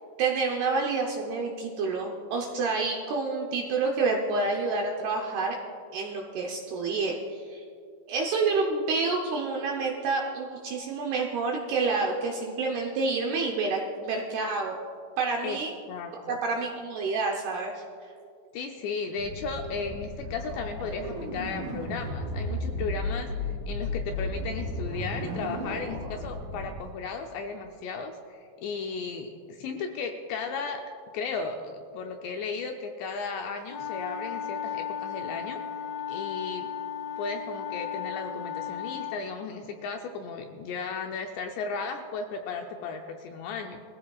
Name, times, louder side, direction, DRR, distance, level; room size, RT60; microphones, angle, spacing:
voice 1, 0.2-5.6 5.9-7.6 8.1-14.8 15.2-15.7 16.3-17.8, right 4 dB, 75° right, 0 dB, 2.4 m, -28 dB
voice 2, 15.9-16.4 18.5-30.8 31.1-36.7 37.2-43.8, left 4 dB, 80° left, 3 dB, 2.6 m, -35 dB
sound 1, 19.2-26.8, left 1 dB, 35° right, 2.0 m, -34 dB
sound 2, 33.7-39.2, left 9 dB, 65° left, 1.7 m, -35 dB
22.0 x 15.0 x 2.4 m, 2.4 s
omnidirectional pair, 5.6 m